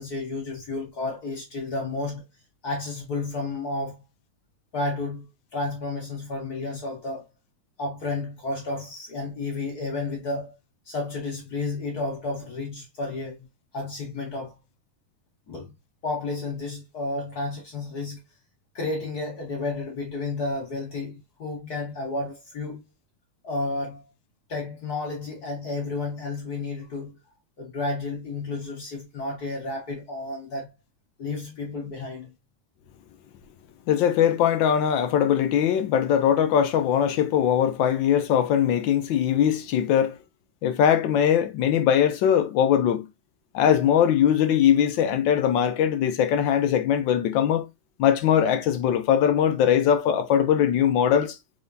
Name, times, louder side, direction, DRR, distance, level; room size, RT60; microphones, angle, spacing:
voice 1, 0.0-2.2 2.6-4.0 4.7-5.3 5.5-7.3 7.8-10.5 10.8-13.4 13.7-14.5 15.5-15.7 16.0-18.2 18.7-22.8 23.4-24.1 24.5-27.2 27.6-30.7 31.2-32.3, left 3 dB, 50° left, 1.7 m, -31 dB
voice 2, 33.9-40.2 40.6-43.1 43.5-47.7 48.0-51.4, left 9 dB, 70° left, 1.2 m, -21 dB
4.7 x 3.5 x 2.6 m
omnidirectional pair, 2.4 m